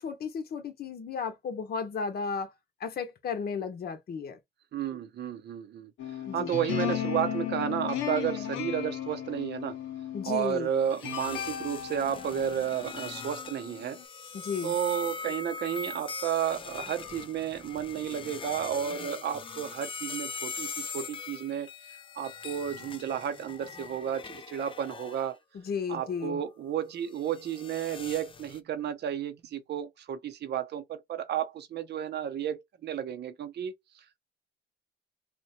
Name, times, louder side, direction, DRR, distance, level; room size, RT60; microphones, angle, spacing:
voice 1, 0.0-2.5 2.8-4.4 6.2-6.5 10.1-10.7 14.3-14.7 25.5-26.4, left 5 dB, 50° left, 0.8 m, -34 dB
voice 2, 4.7-5.9 6.3-9.8 10.2-14.0 14.6-21.7 22.2-25.4 25.9-34.2, right 9 dB, 60° right, 0.6 m, -32 dB
sound 1, 6.0-14.0, left 11 dB, 90° left, 0.8 m, -35 dB
sound 2, 10.8-25.3 25.9-28.6, left 5 dB, 25° left, 0.4 m, -42 dB
2.9 x 2.1 x 4.1 m
cardioid pair, 90°, 20 cm